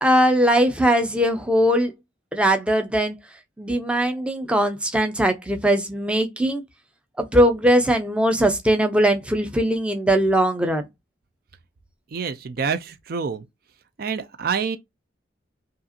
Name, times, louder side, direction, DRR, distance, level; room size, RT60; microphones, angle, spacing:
voice 1, 0.0-1.9 2.3-3.1 3.6-6.6 7.2-10.8, equal, 5° right, 0.6 m, -20 dB
voice 2, 12.1-13.4 14.0-14.8, right 6 dB, 50° right, 0.4 m, -27 dB
5.3 x 2.5 x 2.6 m
head